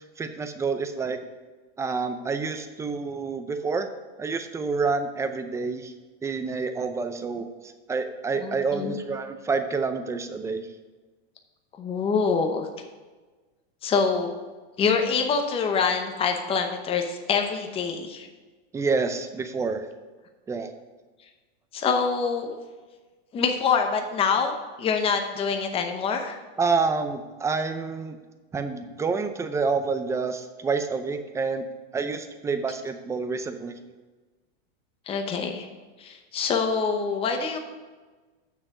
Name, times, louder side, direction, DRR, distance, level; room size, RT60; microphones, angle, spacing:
voice 1, 0.2-1.2 1.8-3.9 4.2-5.9 6.2-7.5 7.9-10.7 18.7-19.9 20.5-20.7 26.6-28.2 28.5-31.7 31.9-33.7, right 4 dB, 10° right, 8 dB, 0.5 m, -28 dB
voice 2, 8.4-9.0 11.8-12.7 13.8-14.3 14.8-18.3 21.7-22.5 23.3-26.4 35.1-35.7 36.0-37.6, left 5 dB, 20° left, 5 dB, 0.8 m, -25 dB
7.0 x 6.2 x 6.5 m, 1.3 s
supercardioid pair, 135°, 31 cm